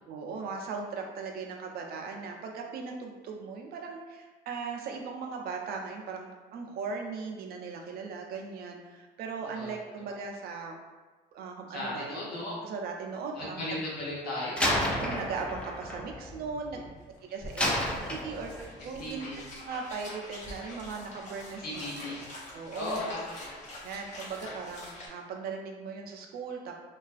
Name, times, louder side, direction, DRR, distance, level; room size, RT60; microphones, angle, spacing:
voice 1, 0.1-10.8 11.3-12.2 12.6-13.8 15.0-16.8 17.3-17.7 18.1-19.3 19.6-21.8 22.5-23.0 23.8-26.7, right 5 dB, 65° right, 2 dB, 0.4 m, -38 dB
voice 2, 11.7-12.6 13.3-14.7 17.7-17.8 19.0-19.4 21.6-22.2 22.7-23.6, left 1 dB, 70° left, -6 dB, 0.9 m, -36 dB
Slam, 14.6-17.0 17.6-18.8, left 1 dB, 5° left, 0.3 m, -31 dB
sound 1, 16.9-17.0 17.1-25.1, left 1 dB, 45° left, 0.6 m, -45 dB
2.4 x 2.2 x 2.4 m, 1.3 s
cardioid pair, 110°, 17 cm